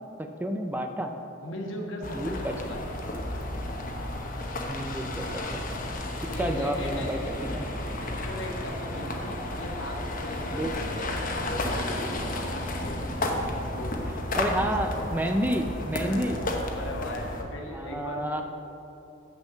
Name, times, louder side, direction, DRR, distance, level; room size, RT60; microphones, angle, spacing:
voice 1, 0.2-1.1 2.1-2.5 4.7-5.4 6.4-7.7 10.5-10.7 14.3-16.4 17.7-18.4, right 1 dB, 10° right, 5 dB, 0.4 m, -30 dB
voice 2, 1.4-2.9 6.3-7.3 8.0-11.1 11.4-12.5 12.8-13.0 13.6-14.0 14.6-14.8 16.0-18.4, left 1 dB, 75° left, 0 dB, 1.3 m, -38 dB
sound 1, 2.0-17.4, left 1 dB, 45° left, 0.9 m, -32 dB
6.5 x 6.4 x 7.5 m, 2.9 s
head